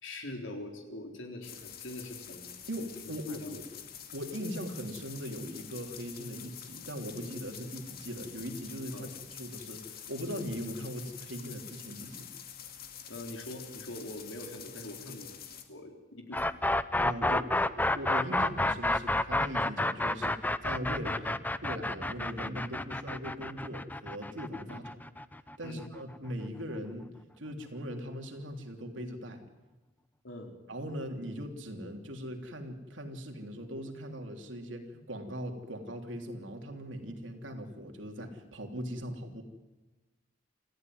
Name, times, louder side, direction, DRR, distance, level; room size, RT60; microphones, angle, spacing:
voice 1, 0.0-2.9 3.3-3.5 8.9-9.1 13.1-15.3 15.7-16.5 24.7-24.8 25.6-25.8 30.2-30.6, left 1 dB, 85° left, 4 dB, 4.0 m, -43 dB
sound 1, 1.4-15.6, left 8 dB, 55° left, 2.3 m, -47 dB
voice 2, 2.7-3.7 4.1-12.3 17.0-24.9 25.6-27.1 27.4-29.4 30.7-39.4, equal, 75° right, 4 dB, 3.3 m, -40 dB
sound 2, 16.3-26.2, left 2 dB, 10° left, 0.7 m, -30 dB
27.5 x 14.5 x 9.5 m, 1.2 s
head